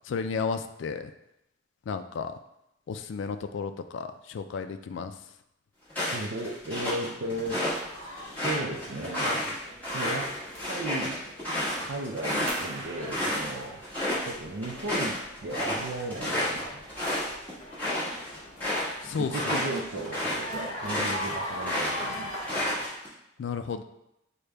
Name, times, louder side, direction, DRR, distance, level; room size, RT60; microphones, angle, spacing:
voice 1, 0.1-1.1 1.9-2.3 2.9-5.1 19.0-19.6 21.0-21.1 23.4-23.8, left 5 dB, 70° left, 9 dB, 0.3 m, -33 dB
sound 1, 5.9-7.8 8.2-13.5 13.8-14.3 14.6-21.3 21.6-23.1, left 1 dB, 10° left, 1.4 m, -31 dB
voice 2, 6.0-7.7 8.4-9.6 9.9-10.4 10.7-11.2 11.8-13.8 14.2-16.8 19.2-22.8, right 2 dB, 65° right, -2 dB, 0.5 m, -35 dB
sound 2, 7.6-22.9, equal, 35° left, 1.4 m, -41 dB
sound 3, 12.5-17.8, right 2 dB, 90° right, 0.8 m, -45 dB
6.4 x 2.2 x 3.3 m, 0.84 s
head